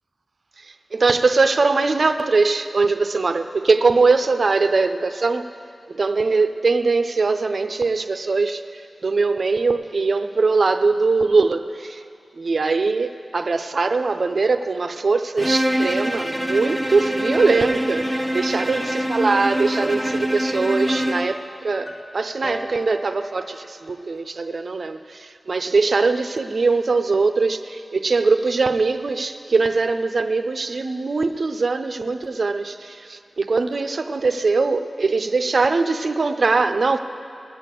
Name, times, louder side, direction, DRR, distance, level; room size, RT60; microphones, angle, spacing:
voice 1, 0.7-5.5 5.9-12.0 12.3-37.0, right 3 dB, 65° right, 8 dB, 0.6 m, -21 dB
Bowed string instrument, 15.4-21.4, equal, ahead, 1.1 m, -24 dB
sound 1, 20.7-24.1, equal, 50° left, 1.3 m, -39 dB
19.5 x 6.6 x 7.7 m, 2.5 s
cardioid pair, 40°, 0 cm